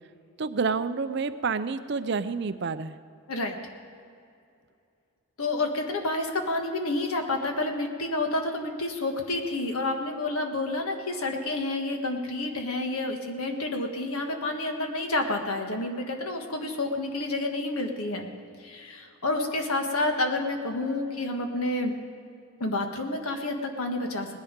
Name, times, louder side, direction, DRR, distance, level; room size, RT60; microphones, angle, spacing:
voice 1, 0.4-3.0, right 5 dB, 50° right, 12 dB, 0.5 m, -29 dB
voice 2, 5.4-18.3 18.6-21.9 22.6-24.3, left 2 dB, 80° left, 4 dB, 1.6 m, -29 dB
18.5 x 10.5 x 5.2 m, 2.4 s
head